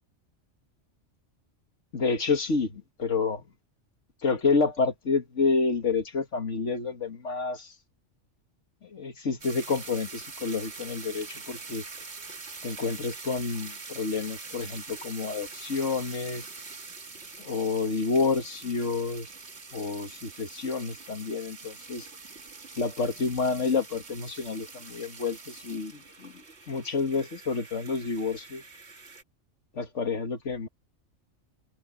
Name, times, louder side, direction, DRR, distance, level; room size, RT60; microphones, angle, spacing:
voice 1, 1.9-3.4 4.2-7.7 8.8-11.8 12.6-16.4 17.4-19.3 19.7-22.1 22.8-28.6 29.7-30.7, left 4 dB, 70° left, 2.1 m, -29 dB
sound 1, 9.4-29.2, right 4 dB, 60° right, 2.2 m, -44 dB
omnidirectional pair, 1.3 m